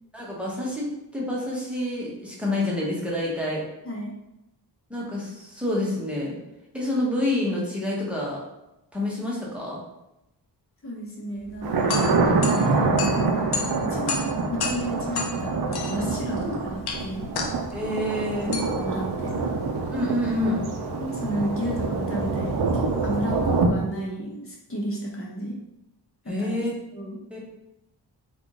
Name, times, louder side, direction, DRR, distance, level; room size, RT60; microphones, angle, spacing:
voice 1, 0.1-3.7 4.9-6.4 6.7-8.4 8.9-9.8 16.4-16.5 17.7-18.6 19.9-20.6 26.3-26.7 27.3-27.4, left 1 dB, 5° right, -5 dB, 1.0 m, -28 dB
voice 2, 10.8-11.7 12.2-13.5 13.8-17.3 18.5-19.5 21.0-25.6 26.2-26.6 26.9-27.2, equal, 30° left, -2 dB, 1.0 m, -33 dB
sound 1, 11.4-20.6, left 4 dB, 60° left, 0.6 m, -34 dB
Thunder, 11.6-23.7, right 3 dB, 60° right, 0.6 m, -26 dB
3.6 x 2.5 x 3.6 m, 0.91 s
wide cardioid pair, 110°, 42 cm